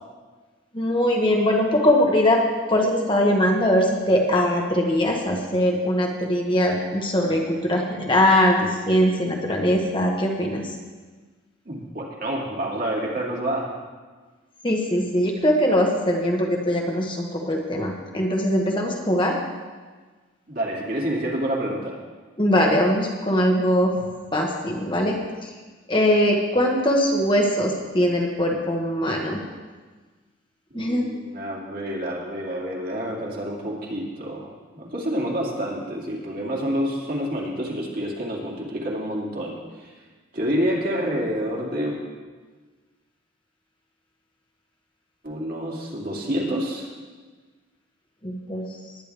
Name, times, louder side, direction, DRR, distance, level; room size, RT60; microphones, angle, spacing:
voice 1, 0.7-2.4 2.7-10.6 14.6-19.4 22.4-23.9 24.3-25.2 25.9-29.4 30.7-31.1 48.2-48.7, left 1 dB, 25° left, 0 dB, 1.3 m, -21 dB
voice 2, 11.7-13.7 20.5-21.9 30.7-34.5 34.7-39.9 40.3-42.0 45.2-46.9, equal, 45° right, -3 dB, 2.4 m, -28 dB
19.5 x 10.0 x 3.5 m, 1.4 s
head